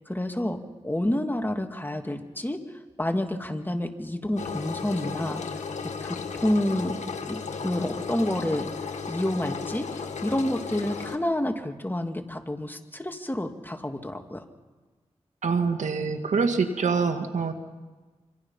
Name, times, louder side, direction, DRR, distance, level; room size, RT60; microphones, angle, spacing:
voice 1, 0.1-2.6 3.0-5.4 5.8-7.0 7.3-8.7 9.1-14.4, left 1 dB, 15° left, 5 dB, 2.5 m, -29 dB
Engine, 4.4-11.2, left 5 dB, 90° left, 1.7 m, -34 dB
voice 2, 15.4-17.5, right 5 dB, 90° right, 7 dB, 1.8 m, -25 dB
26.5 x 26.0 x 5.8 m, 1.3 s
cardioid pair, 50°, 12 cm